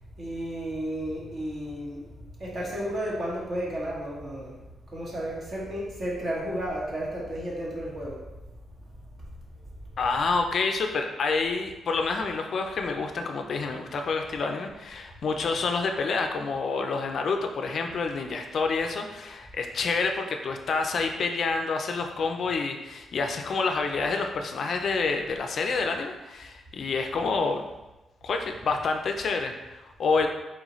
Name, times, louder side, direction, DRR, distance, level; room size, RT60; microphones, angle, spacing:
voice 1, 0.2-2.1 2.4-4.5 4.9-8.2, equal, 40° right, -4 dB, 1.2 m, -32 dB
voice 2, 10.0-27.6 28.2-30.3, left 4 dB, 50° left, 4 dB, 0.4 m, -28 dB
4.4 x 3.9 x 3.0 m, 1.0 s
wide cardioid pair, 155°, 0 cm